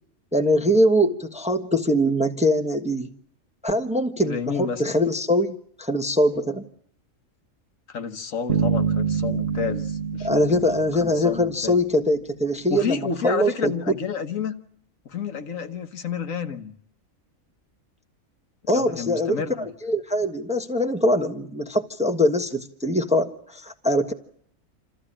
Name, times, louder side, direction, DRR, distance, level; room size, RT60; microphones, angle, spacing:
voice 1, 0.3-3.1 3.6-6.6 10.2-13.7 18.7-24.1, equal, 5° right, 1.1 m, -22 dB
voice 2, 4.2-4.8 7.9-10.6 11.0-11.8 12.7-14.5 15.0-16.7 18.6-19.7, left 6 dB, 70° left, 1.5 m, -30 dB
sound 1, 8.5-11.9, right 7 dB, 45° right, 1.3 m, -26 dB
28.0 x 14.0 x 10.0 m
omnidirectional pair, 1.5 m